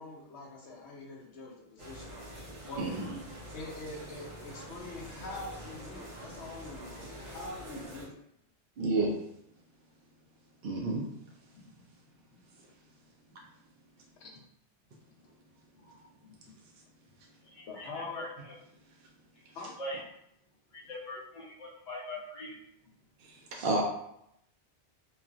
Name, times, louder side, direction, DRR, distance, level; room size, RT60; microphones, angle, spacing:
voice 1, 0.0-2.1 2.7-3.0 3.5-8.1 11.6-11.8 12.3-12.4 13.4-13.5 14.2-14.4 16.2-16.5 17.7-18.3 19.5-19.7, left 2 dB, 75° left, -2 dB, 1.0 m, -44 dB
sound 1, 1.8-8.0, equal, 90° right, 1.2 m, -46 dB
voice 2, 2.8-3.1 8.8-9.2 10.6-11.1 23.5-23.8, right 2 dB, 60° right, -2 dB, 0.7 m, -29 dB
voice 3, 17.4-18.5 19.4-19.5 19.8-20.0 20.7-22.6, left 1 dB, 40° left, -6 dB, 0.8 m, -42 dB
3.0 x 2.4 x 2.4 m, 0.76 s
omnidirectional pair, 1.2 m